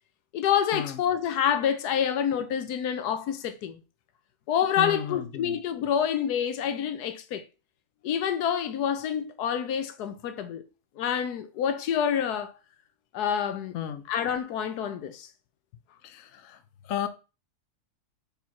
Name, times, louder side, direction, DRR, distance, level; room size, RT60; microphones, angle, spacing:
voice 1, 0.3-3.8 4.5-7.4 8.0-10.6 11.0-12.5 13.1-13.7 14.1-15.3, left 8 dB, 80° left, 1.3 m, -27 dB
voice 2, 4.8-5.6 13.7-14.0 16.0-17.1, left 10 dB, 60° left, 1.1 m, -34 dB
5.3 x 4.6 x 5.8 m
omnidirectional pair, 1.7 m